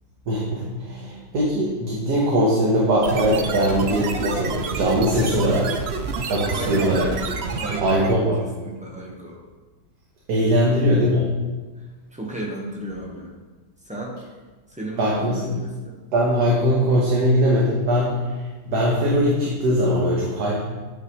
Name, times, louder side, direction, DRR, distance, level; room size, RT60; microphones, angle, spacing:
voice 1, 0.3-5.8 6.3-7.1 7.8-8.4 10.3-11.2 15.0-15.4 16.1-20.6, equal, 70° right, -4 dB, 1.6 m, -21 dB
sound 1, 3.0-8.2, right 4 dB, 85° right, 0.5 m, -28 dB
voice 2, 6.5-7.0 7.5-8.2 8.6-9.4 10.6-11.0 12.1-13.3 13.9-14.1 14.7-15.9, right 1 dB, 5° right, -2 dB, 0.8 m, -33 dB
8.8 x 5.7 x 3.1 m, 1.3 s
omnidirectional pair, 1.8 m